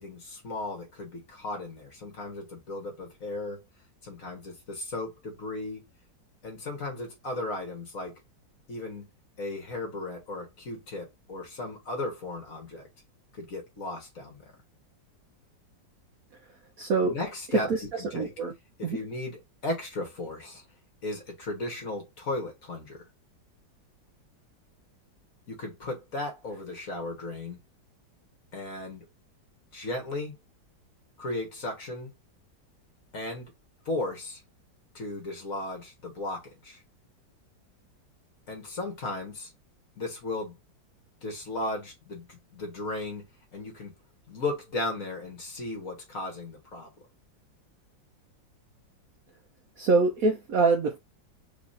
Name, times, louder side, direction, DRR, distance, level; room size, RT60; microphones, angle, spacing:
voice 1, 0.0-3.6 4.0-5.8 6.4-8.2 8.7-9.1 9.4-12.9 13.3-14.4 17.0-18.3 18.8-20.6 21.0-23.1 25.5-27.6 28.5-29.1 29.7-30.4 31.2-32.1 33.1-33.5 33.9-34.4 34.9-36.8 38.5-39.5 40.0-40.5 41.2-43.3 43.5-43.9 44.3-46.9, left 2 dB, 45° left, 1.9 m, -35 dB
voice 2, 16.8-17.1 17.7-17.8 18.1-18.5 18.8-19.0 49.8-51.0, right 4 dB, 60° right, 1.0 m, -24 dB
4.2 x 3.0 x 4.0 m
omnidirectional pair, 2.1 m